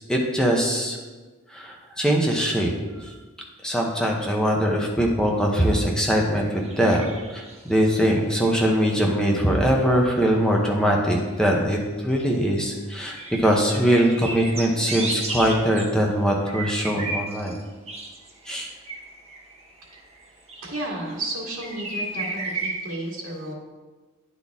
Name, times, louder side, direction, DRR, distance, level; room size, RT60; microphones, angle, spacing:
voice 1, 0.1-1.0 1.5-3.1 3.6-11.8 12.0-17.6 18.5-18.7, equal, 5° left, -1 dB, 0.7 m, -22 dB
sound 1, 5.5-5.7 6.4-7.7 8.0-8.8 9.1-9.9 10.7-11.7 12.0-12.6 12.9-15.9 16.5-17.6 17.9-21.2 21.6-22.7, right 2 dB, 30° right, 1.0 m, -34 dB
voice 2, 20.6-23.5, right 1 dB, 80° right, -5 dB, 2.0 m, -32 dB
9.6 x 4.1 x 3.5 m, 1.3 s
head